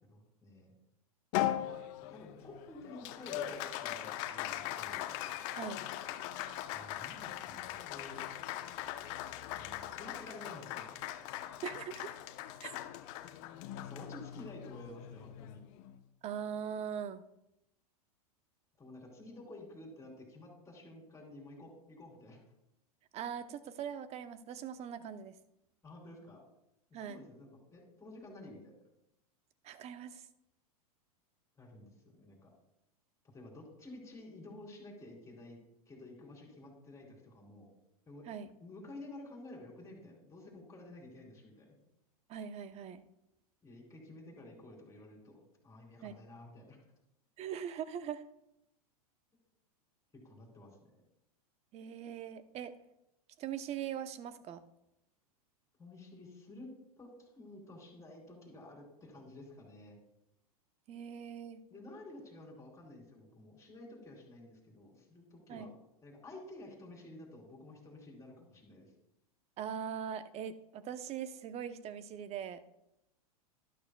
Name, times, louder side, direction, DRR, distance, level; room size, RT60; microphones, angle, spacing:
voice 1, 0.1-0.7 2.1-5.0 6.7-8.3 9.6-11.1 13.8-15.6 18.8-22.4 25.8-26.5 26.9-28.7 31.6-32.5 33.3-35.6 35.9-37.7 38.1-38.3 38.6-41.8 43.6-46.8 50.2-50.8 55.8-56.7 57.0-60.0 61.7-65.7 66.0-68.9, left 2 dB, 15° left, 0 dB, 3.5 m, -51 dB
Applause, 1.3-16.0, left 13 dB, 55° left, 0.8 m, -40 dB
voice 2, 11.6-12.2 12.6-12.7 16.2-17.2 23.1-25.4 26.9-27.2 29.6-30.3 38.3-38.5 42.3-43.0 46.0-46.1 47.4-48.2 51.7-52.7 53.4-54.6 60.9-61.6 65.5-65.7 69.6-72.6, right 8 dB, 35° right, 12 dB, 0.7 m, -41 dB
12.0 x 12.0 x 2.3 m, 0.86 s
hypercardioid pair, 110°, 20 cm